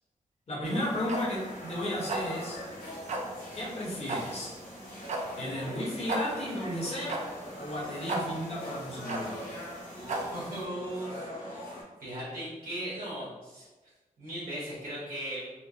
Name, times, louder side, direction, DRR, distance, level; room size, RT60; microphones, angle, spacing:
voice 1, 0.5-2.6 3.5-4.5 5.4-7.2 7.6-9.4, left 1 dB, 45° left, -5 dB, 1.0 m, -34 dB
sound 1, 0.6-11.8, equal, 80° left, 1.0 m, -43 dB
sound 2, 0.7-10.6, right 2 dB, 55° right, 0.4 m, -37 dB
voice 2, 9.9-13.7 14.2-15.5, right 1 dB, 85° right, -9 dB, 1.4 m, -38 dB
4.4 x 2.0 x 2.8 m, 1.2 s
wide cardioid pair, 170°, 14 cm